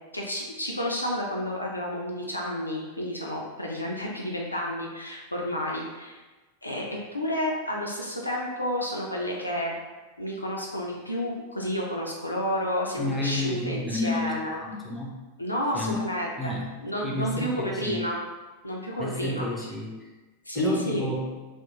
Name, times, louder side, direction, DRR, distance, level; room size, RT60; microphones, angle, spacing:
voice 1, 0.1-6.2 6.6-9.7 10.2-14.6 15.4-18.2 18.6-19.7 20.5-21.1, equal, 85° left, -2 dB, 0.3 m, -30 dB
voice 2, 13.0-15.1 15.7-16.1 16.4-16.7 17.0-18.0 19.0-20.1 20.5-21.4, left 1 dB, 5° left, -3 dB, 0.5 m, -31 dB
2.8 x 2.1 x 2.4 m, 1.2 s
figure-of-eight pair, 90°, 0 cm